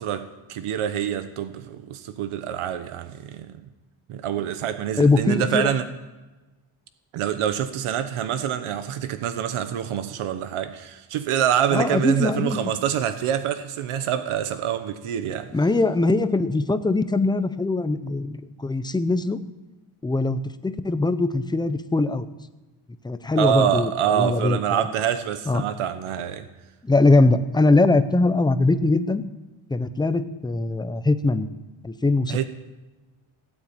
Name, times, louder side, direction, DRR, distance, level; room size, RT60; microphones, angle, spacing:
voice 1, 0.0-3.6 4.1-5.9 7.1-15.5 23.4-26.5 32.3-32.5, right 9 dB, 85° right, 1.2 m, -26 dB
voice 2, 5.0-5.7 11.7-12.7 15.5-19.4 20.0-22.3 23.0-24.8 25.5-25.6 26.8-29.2 29.7-31.5 31.8-32.4, left 2 dB, 10° left, 0.6 m, -21 dB
17.5 x 8.8 x 9.0 m
cardioid pair, 175°, 49 cm